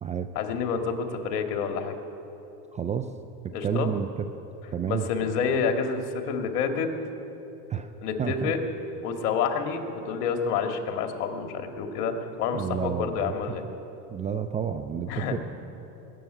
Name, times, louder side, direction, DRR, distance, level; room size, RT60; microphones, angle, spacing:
voice 1, 0.4-1.9 3.5-3.9 4.9-6.9 8.0-8.6 9.0-12.1 12.4-13.6 15.1-15.3, left 6 dB, 70° left, 4 dB, 2.0 m, -28 dB
voice 2, 2.7-3.1 3.4-4.1 4.7-5.1 7.7-7.9 8.2-8.5 12.5-13.3 14.1-15.4, right 8 dB, 15° right, 8 dB, 0.3 m, -30 dB
20.5 x 7.6 x 9.0 m, 3.0 s
supercardioid pair, 110°, 47 cm